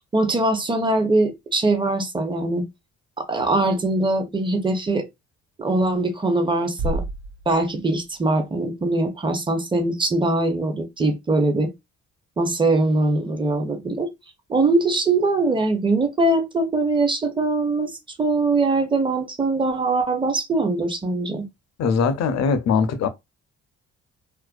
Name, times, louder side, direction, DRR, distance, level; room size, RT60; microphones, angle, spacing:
voice 1, 0.0-2.7 3.2-5.1 5.6-7.0 7.5-11.7 12.4-14.1 14.5-21.5, right 2 dB, 15° right, 0.6 m, -22 dB
Bass drum, 6.8-8.5, right 1 dB, 60° right, 0.5 m, -31 dB
voice 2, 21.8-23.1, left 5 dB, 60° left, 0.5 m, -21 dB
2.5 x 2.1 x 2.3 m
cardioid pair, 90°, 30 cm